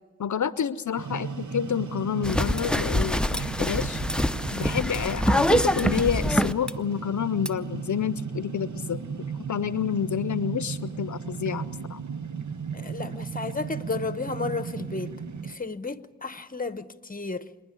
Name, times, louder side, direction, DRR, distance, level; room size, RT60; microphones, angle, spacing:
voice 1, 0.2-4.0 4.5-9.0 9.5-12.0, left 8 dB, 80° left, 15 dB, 0.5 m, -29 dB
sound 1, 1.0-15.6, right 6 dB, 85° right, 1.0 m, -35 dB
sound 2, 2.2-6.7 7.5-7.6, equal, 5° left, 0.6 m, -25 dB
voice 2, 12.7-15.2 15.4-17.5, left 4 dB, 30° left, 12 dB, 0.9 m, -33 dB
26.5 x 10.5 x 9.8 m, 1.4 s
wide cardioid pair, 45°, 29 cm